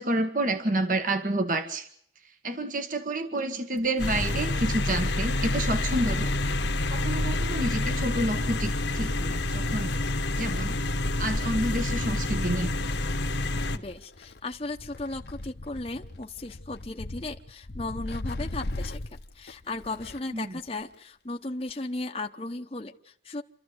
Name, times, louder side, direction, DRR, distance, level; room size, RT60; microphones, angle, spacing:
voice 1, 0.0-1.9 2.2-6.5 6.9-10.0 10.4-10.7 11.2-12.7 20.3-20.6, right 1 dB, 45° right, 8 dB, 1.5 m, -29 dB
Wind, 3.8-20.4 20.7-20.8 21.8-21.9, left 2 dB, 65° left, 1.0 m, -40 dB
sound 1, 4.0-13.8, left 2 dB, 85° left, 1.5 m, -28 dB
voice 2, 13.7-19.0 19.3-23.4, left 2 dB, 30° left, 2 dB, 0.9 m, -36 dB
27.5 x 13.5 x 8.1 m, 0.67 s
head